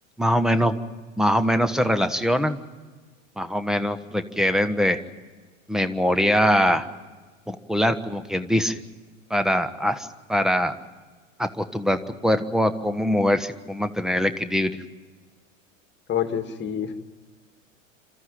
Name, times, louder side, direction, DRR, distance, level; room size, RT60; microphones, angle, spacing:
voice 1, 0.2-0.8 1.2-2.6 3.4-5.0 5.7-6.9 7.5-8.8 9.3-10.8 11.4-14.8, equal, ahead, 10 dB, 1.2 m, -23 dB
voice 2, 16.1-16.9, left 9 dB, 25° left, 8 dB, 2.1 m, -27 dB
27.5 x 13.5 x 9.1 m, 1.4 s
figure-of-eight pair, 85°, 40 cm